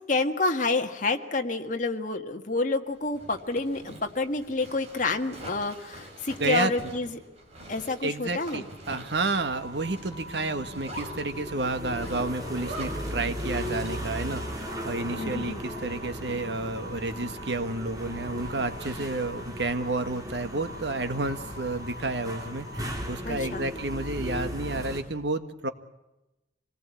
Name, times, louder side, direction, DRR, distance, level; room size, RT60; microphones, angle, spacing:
voice 1, 0.1-7.2 7.7-8.7 15.2-15.6 23.2-23.7, left 3 dB, 45° left, 4 dB, 1.7 m, -28 dB
Zipper (clothing), 2.9-14.1, right 1 dB, 35° right, 6.8 m, -45 dB
voice 2, 6.4-6.7 8.0-25.7, right 2 dB, 65° right, 9 dB, 1.7 m, -31 dB
sound 1, 9.1-25.0, equal, 20° right, 4.1 m, -37 dB
sound 2, 9.2-24.8, equal, 25° left, 5.6 m, -46 dB
25.5 x 19.0 x 8.5 m, 0.96 s
head